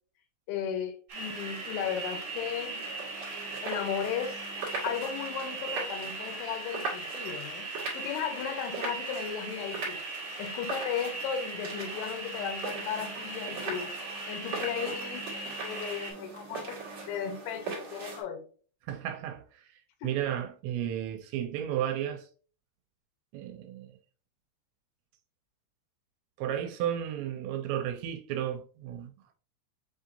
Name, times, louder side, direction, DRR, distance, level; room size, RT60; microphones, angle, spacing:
voice 1, 0.5-2.8 3.6-4.4 4.8-10.0 10.4-13.9 14.3-18.5 20.0-20.1, left 8 dB, 80° left, 3.2 m, -35 dB
sound 1, 1.1-16.1, right 2 dB, 40° right, 1.7 m, -39 dB
sound 2, 1.1-18.2, right 4 dB, 60° right, 1.4 m, -41 dB
voice 2, 18.9-19.4 20.0-22.3 23.3-24.0 26.4-29.1, right 10 dB, 80° right, 2.7 m, -33 dB
7.3 x 2.8 x 2.6 m
omnidirectional pair, 5.3 m